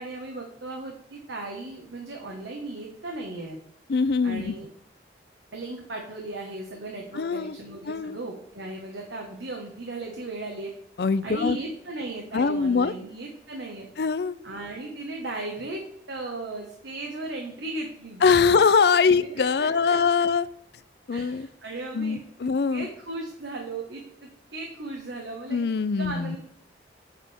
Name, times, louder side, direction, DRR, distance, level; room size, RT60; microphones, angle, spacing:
voice 1, 0.0-3.6 4.2-4.7 5.5-10.7 11.2-13.9 14.4-18.6 19.1-20.2 21.1-22.2 22.7-25.6 26.0-26.4, right 2 dB, 75° right, 1.3 m, -36 dB
voice 2, 3.9-4.5 7.1-7.6 7.9-8.2 11.0-11.6 12.3-12.9 14.0-14.4 18.2-20.5 21.1-21.5 21.9-22.9 25.5-26.4, left 5 dB, 60° left, 0.4 m, -22 dB
8.2 x 7.4 x 3.5 m
head